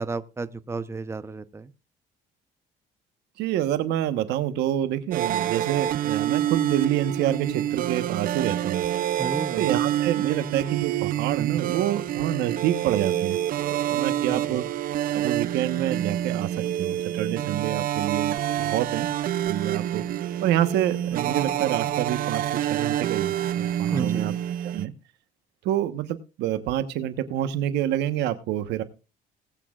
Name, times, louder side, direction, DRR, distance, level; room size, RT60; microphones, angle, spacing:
voice 1, 0.0-1.7 9.2-9.7 14.3-14.6 23.9-24.4, right 4 dB, 15° right, 0.8 m, -32 dB
voice 2, 3.4-8.9 9.5-13.4 13.9-14.6 15.1-16.5 16.8-19.1 19.5-20.0 20.4-22.4 22.7-24.3 24.7-24.9 25.6-28.8, right 12 dB, 85° right, 1.2 m, -27 dB
sound 1, 5.1-24.9, right 11 dB, 55° right, 0.6 m, -27 dB
20.0 x 8.5 x 2.4 m
cardioid pair, 110°, 17 cm